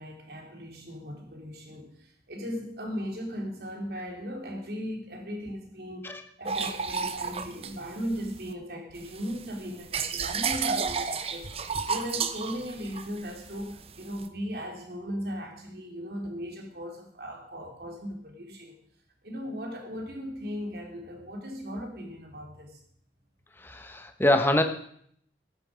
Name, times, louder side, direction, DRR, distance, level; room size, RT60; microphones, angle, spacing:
voice 1, 0.0-6.1 6.4-11.5 11.9-18.8 19.2-22.8, equal, 60° right, 1 dB, 3.4 m, -37 dB
sound 1, 6.4-8.5 8.9-14.3, right 5 dB, 35° right, 0.8 m, -32 dB
voice 2, 23.6-24.6, left 1 dB, 15° left, 7 dB, 1.0 m, -24 dB
14.0 x 10.5 x 5.0 m, 0.64 s
head